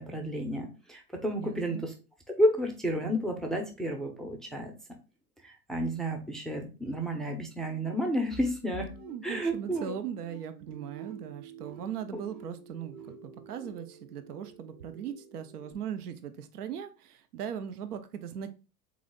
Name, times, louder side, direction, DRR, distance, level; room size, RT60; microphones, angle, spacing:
voice 1, 0.0-1.9 2.4-4.7 5.4-8.9 9.2-9.9 12.1-12.2, equal, ahead, 2 dB, 0.5 m, -31 dB
voice 2, 1.4-1.9 9.0-18.5, right 8 dB, 80° right, 10 dB, 0.7 m, -39 dB
sound 1, 8.7-15.7, right 6 dB, 60° right, 1.5 m, -50 dB
3.8 x 3.1 x 3.6 m, 0.32 s
hypercardioid pair, 90°, 46 cm